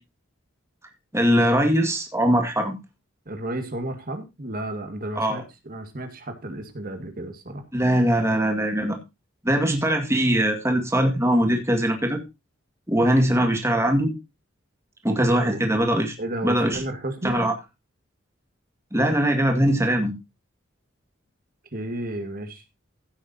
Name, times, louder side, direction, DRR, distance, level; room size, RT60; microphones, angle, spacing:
voice 1, 1.1-2.7 5.2-5.4 7.7-9.0 9.4-12.2 12.9-14.1 15.0-16.2 16.4-16.8 17.2-17.5 18.9-20.1, equal, 15° right, 4 dB, 2.0 m, -21 dB
voice 2, 3.3-7.6 13.0-13.1 15.2-15.6 16.2-17.4 21.7-22.6, right 1 dB, 45° right, 7 dB, 2.0 m, -32 dB
16.0 x 8.4 x 2.8 m, 0.25 s
head